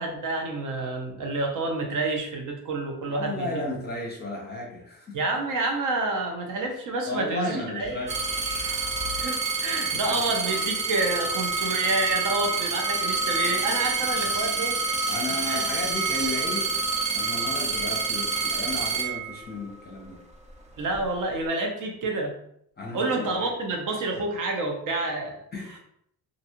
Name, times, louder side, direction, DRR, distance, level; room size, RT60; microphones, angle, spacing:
voice 1, 0.0-3.8 5.1-8.0 9.2-14.8 15.4-15.6 20.8-22.3 22.9-25.4 25.7-25.8, right 2 dB, 55° right, 2 dB, 0.7 m, -28 dB
voice 2, 3.1-5.2 7.0-8.6 9.1-9.3 9.9-10.2 15.1-16.7 17.1-20.2 22.8-23.5 25.5-25.8, left 2 dB, 25° left, -2 dB, 0.6 m, -34 dB
sound 1, 7.8-9.4, left 3 dB, 75° right, 1.4 m, -40 dB
sound 2, 8.1-19.8 20.5-21.1, right 4 dB, 20° right, 0.3 m, -27 dB
2.6 x 2.3 x 2.8 m, 0.71 s
cardioid pair, 115°, 39 cm